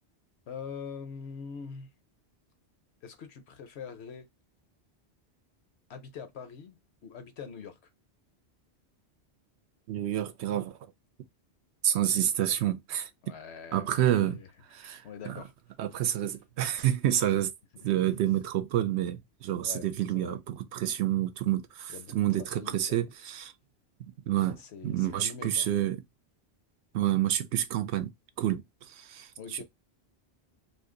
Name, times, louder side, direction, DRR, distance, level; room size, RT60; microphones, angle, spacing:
voice 1, 0.5-1.9 3.0-4.3 5.9-7.8 13.2-14.5 14.8-15.5 19.6-19.9 20.1-20.4 21.9-23.0 24.3-25.7 29.4-29.6, left 6 dB, 75° left, 1.0 m, -44 dB
voice 2, 9.9-10.8 11.8-13.1 13.7-14.4 14.8-15.3 15.8-17.5 17.8-23.5 24.3-26.0 26.9-29.6, right 12 dB, 85° right, 0.9 m, -29 dB
2.6 x 2.5 x 3.7 m
omnidirectional pair, 1.1 m